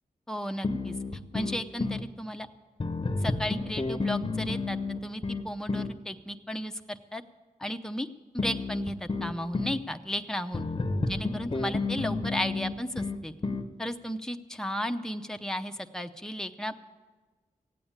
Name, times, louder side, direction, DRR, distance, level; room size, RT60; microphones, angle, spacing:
voice 1, 0.3-0.9 1.3-2.5 3.2-7.2 7.6-8.1 8.3-10.7 11.1-13.3 13.8-16.8, equal, 5° left, 7 dB, 0.6 m, -34 dB
sound 1, 0.6-2.1 2.8-6.0 8.4-9.8 10.5-13.7, left 3 dB, 35° left, 0.8 m, -31 dB
16.5 x 8.6 x 8.8 m, 1.3 s
wide cardioid pair, 95°, 15 cm